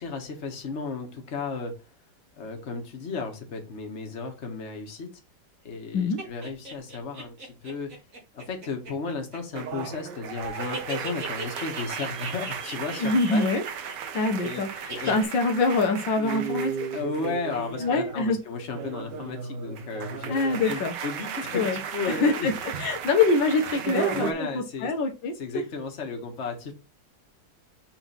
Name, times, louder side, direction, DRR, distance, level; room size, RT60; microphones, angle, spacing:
voice 1, 0.0-1.7 2.4-5.1 5.6-7.9 8.3-13.4 14.4-14.6 14.9-15.2 16.9-20.3 20.6-22.5 24.1-24.9 25.4-26.7, left 4 dB, 40° left, 3 dB, 1.7 m, -34 dB
sound 1, 6.2-10.2 10.4-14.5 14.9-15.2, right 2 dB, 50° right, 2.2 m, -38 dB
sound 2, 9.5-18.3 18.6-24.3, right 7 dB, 75° right, 1.5 m, -35 dB
voice 2, 13.0-13.6 14.1-16.9 17.8-18.4 20.3-20.9 21.5-25.6, left 3 dB, 85° left, 5 dB, 1.8 m, -25 dB
6.1 x 3.8 x 5.4 m, 0.29 s
omnidirectional pair, 1.9 m